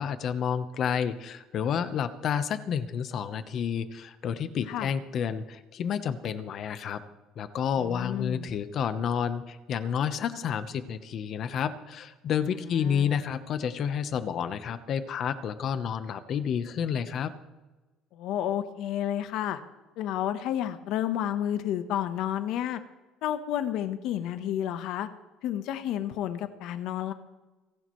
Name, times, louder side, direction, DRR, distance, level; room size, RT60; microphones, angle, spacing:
voice 1, 0.0-7.0 7.4-17.3, left 7 dB, 40° left, 11 dB, 1.0 m, -30 dB
voice 2, 7.8-8.5 12.7-13.2 18.1-19.6 20.0-22.8 23.2-25.1 25.4-27.1, left 11 dB, 65° left, 10 dB, 1.1 m, -31 dB
29.0 x 11.5 x 3.2 m, 1.2 s
cardioid pair, 155°, 0 cm